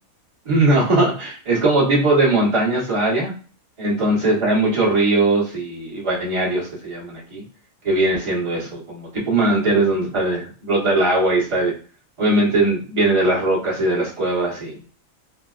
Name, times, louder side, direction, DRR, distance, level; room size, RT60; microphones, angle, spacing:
voice 1, 0.4-3.3 3.8-7.4 7.8-11.7 12.2-14.8, right 2 dB, 25° right, -5 dB, 1.1 m, -20 dB
3.9 x 2.1 x 2.4 m, 0.39 s
omnidirectional pair, 1.5 m